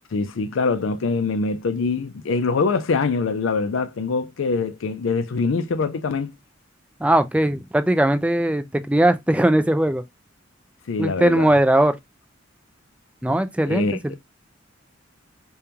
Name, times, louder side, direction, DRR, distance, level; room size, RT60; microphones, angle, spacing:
voice 1, 0.1-6.3 10.9-11.5 13.7-14.2, left 4 dB, 80° left, 0.4 m, -24 dB
voice 2, 7.0-10.0 11.0-12.0 13.2-14.2, right 1 dB, 5° right, 0.4 m, -19 dB
5.1 x 2.3 x 2.8 m
head